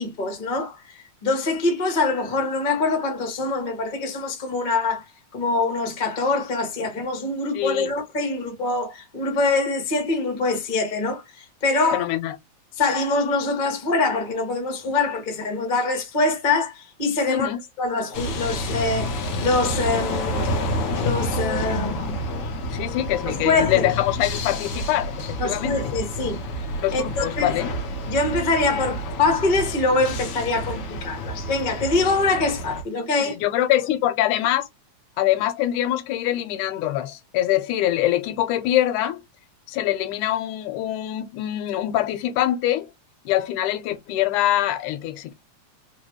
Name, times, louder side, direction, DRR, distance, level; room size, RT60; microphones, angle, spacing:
voice 1, 0.0-5.0 5.3-12.0 12.8-17.5 17.8-20.5 21.0-22.2 23.2-23.9 25.4-26.4 26.9-27.6 28.1-33.3, left 3 dB, 45° left, 0.6 m, -24 dB
voice 2, 7.5-7.9 11.9-12.3 17.3-17.6 21.6-21.8 22.7-25.1 25.4-25.8 26.8-27.7 33.2-34.7 35.2-39.2 39.7-42.9 43.3-45.3, left 13 dB, 90° left, 2.2 m, -24 dB
sound 1, 18.1-32.8, left 1 dB, 60° left, 1.6 m, -29 dB
4.7 x 2.3 x 3.0 m
omnidirectional pair, 3.4 m